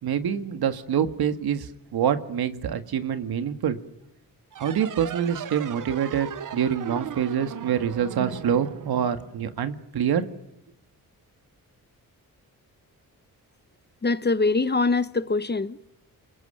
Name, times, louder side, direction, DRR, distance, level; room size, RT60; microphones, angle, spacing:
voice 1, 0.0-3.8 4.6-10.3, right 8 dB, 90° right, 1.9 m, -26 dB
sound 1, 4.5-9.8, right 9 dB, 55° right, 0.9 m, -37 dB
voice 2, 14.0-15.9, left 3 dB, 25° left, 1.1 m, -23 dB
29.0 x 21.5 x 8.9 m
cardioid pair, 80°, 37 cm